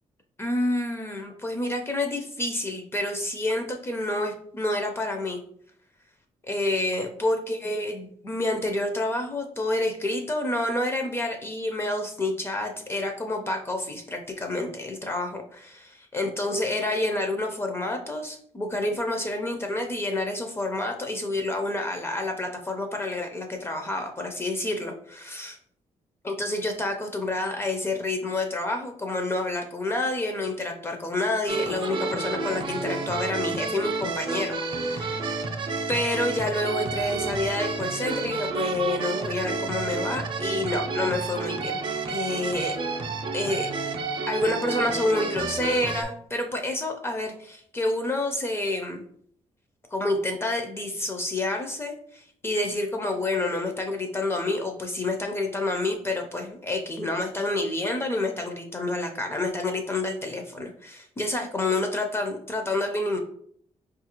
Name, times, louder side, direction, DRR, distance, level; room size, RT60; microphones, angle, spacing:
voice 1, 0.4-5.4 6.4-25.6 26.2-35.4 35.9-41.8 42.1-42.8 43.3-43.7 44.3-49.0 49.9-63.2, left 2 dB, 20° left, 4 dB, 0.4 m, -28 dB
sound 1, 31.5-46.0, right 4 dB, 40° right, 0.5 m, -30 dB
4.7 x 2.4 x 2.9 m, 0.63 s
wide cardioid pair, 160°, 12 cm